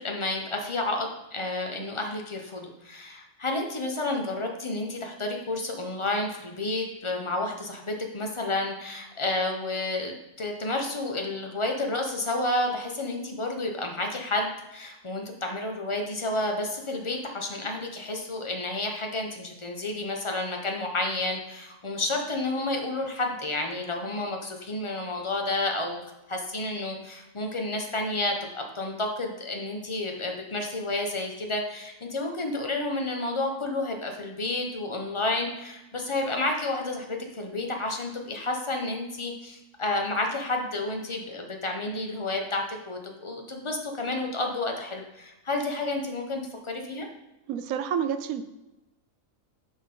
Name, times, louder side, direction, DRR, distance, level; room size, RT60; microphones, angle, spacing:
voice 1, 0.0-26.0 26.3-47.1, left 2 dB, 25° left, 2 dB, 0.8 m, -30 dB
voice 2, 47.5-48.4, right 8 dB, 80° right, 11 dB, 1.0 m, -29 dB
10.0 x 3.9 x 3.7 m, 0.97 s
omnidirectional pair, 1.5 m